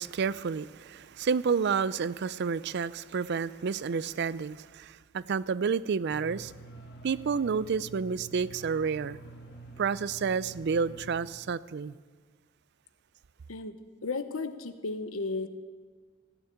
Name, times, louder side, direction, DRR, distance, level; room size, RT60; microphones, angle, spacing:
voice 1, 0.0-6.5 7.0-9.2 9.8-12.0, right 5 dB, 55° right, 18 dB, 0.4 m, -30 dB
sound 1, 6.1-11.3, right 3 dB, 50° left, 2.0 m, -47 dB
voice 2, 13.5-15.5, left 3 dB, 90° left, 10 dB, 1.0 m, -34 dB
16.0 x 7.1 x 10.0 m, 1.5 s
head